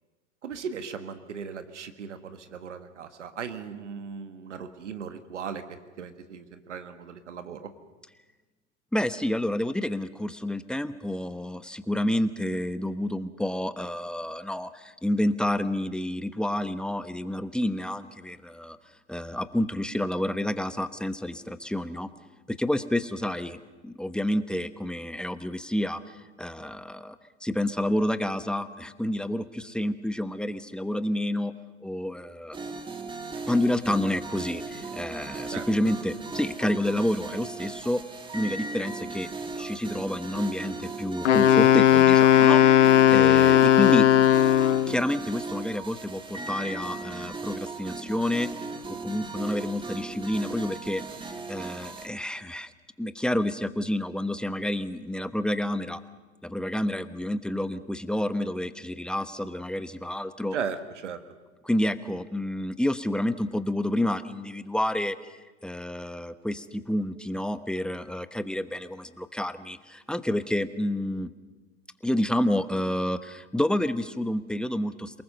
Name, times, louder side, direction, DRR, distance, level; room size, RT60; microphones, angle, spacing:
voice 1, 0.4-7.7 23.5-23.6 35.5-35.7 60.5-61.2, right 6 dB, 85° right, 9 dB, 1.5 m, -37 dB
voice 2, 8.9-18.8 19.1-22.1 22.5-27.2 27.4-31.5 31.8-32.6 33.5-38.0 38.3-39.3 39.6-42.6 43.1-44.1 44.9-48.5 48.9-51.0 51.5-52.7 53.0-56.0 56.4-60.5 61.6-65.2 65.6-71.3 72.0-75.2, left 1 dB, ahead, 11 dB, 1.1 m, -29 dB
sound 1, 32.5-52.1, right 3 dB, 15° right, 2.1 m, -37 dB
Wind instrument woodwind instrument, 41.2-45.0, left 11 dB, 90° left, 0.8 m, -17 dB
28.0 x 19.5 x 6.7 m, 1.2 s
hypercardioid pair, 95°, 35 cm